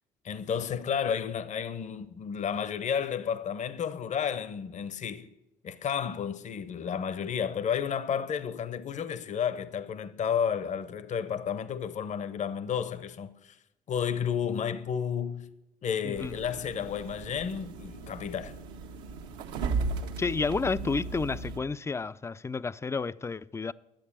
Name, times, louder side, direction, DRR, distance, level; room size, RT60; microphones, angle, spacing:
voice 1, 0.2-5.3 5.6-13.6 13.9-15.5 15.8-18.5, left 7 dB, 45° left, 0.8 m, -32 dB
sound 1, 16.1-21.6, right 4 dB, 85° right, 1.2 m, -36 dB
voice 2, 20.2-23.7, left 4 dB, 15° left, 0.4 m, -31 dB
11.5 x 8.0 x 7.3 m
supercardioid pair, 70°, 17 cm